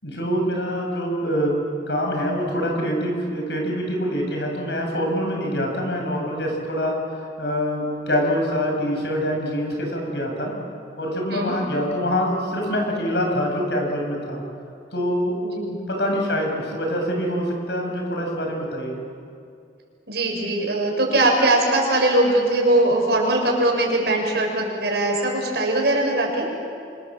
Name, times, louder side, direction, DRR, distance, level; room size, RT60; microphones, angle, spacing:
voice 1, 0.0-1.6 1.9-10.5 11.0-14.4 14.9-15.4 15.9-19.0, equal, 75° left, 1 dB, 7.2 m, -25 dB
voice 2, 15.4-15.8 20.1-26.4, right 1 dB, 70° right, 0 dB, 6.8 m, -21 dB
28.0 x 25.5 x 7.6 m, 2.5 s
head